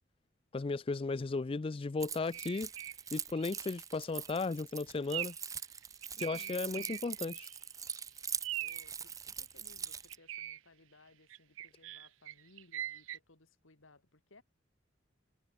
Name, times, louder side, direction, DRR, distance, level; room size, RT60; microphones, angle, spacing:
voice 1, 0.5-2.7 3.1-5.3 6.2-7.5, left 3 dB, 30° left, 0.4 m, -35 dB
Keys jangling, 2.0-10.2, right 7 dB, 15° right, 0.6 m, -43 dB
sound 1, 2.3-3.0 3.3-3.6 4.1-4.3 5.1-5.5 5.8-7.6 7.9-8.0 8.4-8.9 9.9-10.6 11.3-13.2, right 13 dB, 80° right, 0.4 m, -42 dB
voice 2, 6.1-6.7 8.6-14.4, left 2 dB, 85° left, 2.4 m, -63 dB
head